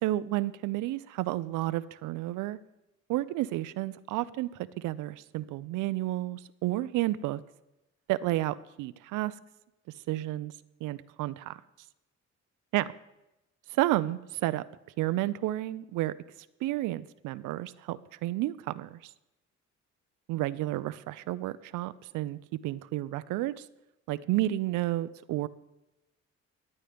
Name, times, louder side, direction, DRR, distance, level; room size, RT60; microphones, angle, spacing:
voice 1, 0.0-2.6 3.1-7.4 8.1-9.3 10.1-10.5 10.8-11.6 12.7-12.9 13.7-14.7 15.0-16.1 16.6-19.1 20.3-23.7 24.1-25.5, right 16 dB, 90° right, 15 dB, 0.5 m, -31 dB
15.0 x 9.9 x 3.4 m, 0.95 s
cardioid pair, 90°, 30 cm